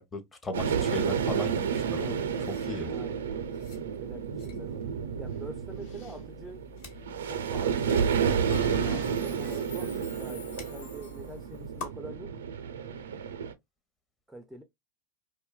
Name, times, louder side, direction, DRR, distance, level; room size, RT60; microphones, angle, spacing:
voice 1, 0.0-2.2 2.5-2.9, left 2 dB, 20° left, 0.7 m, -37 dB
sound 1, 0.5-13.5, right 7 dB, 90° right, 0.4 m, -31 dB
sound 2, 1.5-11.9, left 3 dB, 60° left, 1.0 m, -49 dB
voice 2, 2.8-3.6 4.0-4.8 5.2-6.6 7.3-8.4 8.8-12.3 14.3-14.6, right 2 dB, 5° right, 0.4 m, -45 dB
Bell, 8.5-11.3, right 2 dB, 85° left, 1.4 m, -41 dB
2.5 x 2.2 x 2.3 m
hypercardioid pair, 115°, 0 cm